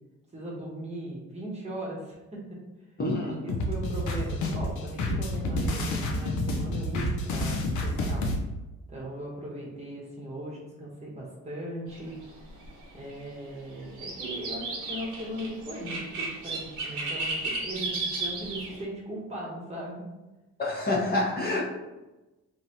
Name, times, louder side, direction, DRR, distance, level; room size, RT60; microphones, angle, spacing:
voice 1, 0.3-2.6 3.2-8.2 8.9-12.1 12.9-20.1, right 1 dB, 20° right, -3 dB, 1.0 m, -38 dB
voice 2, 3.0-3.4 20.6-21.6, left 2 dB, 30° left, -5 dB, 0.8 m, -27 dB
sound 1, 3.5-8.4, left 1 dB, 75° left, 0.6 m, -29 dB
sound 2, 11.9-18.8, right 3 dB, 85° right, 0.8 m, -34 dB
3.0 x 2.6 x 2.7 m, 1.1 s
cardioid pair, 90°, 30 cm